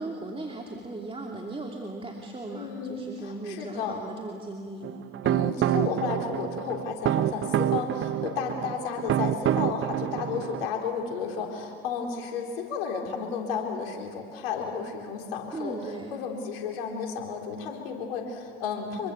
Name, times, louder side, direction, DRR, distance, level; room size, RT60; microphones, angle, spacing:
voice 1, 0.0-4.9 15.5-16.2, right 2 dB, 20° right, 0 dB, 2.8 m, -37 dB
voice 2, 2.5-4.0 5.2-19.1, left 6 dB, 80° left, 1 dB, 4.1 m, -33 dB
sound 1, 4.8-10.7, right 11 dB, 45° right, 0.9 m, -27 dB
27.0 x 23.5 x 7.1 m, 2.5 s
hypercardioid pair, 65°, 30 cm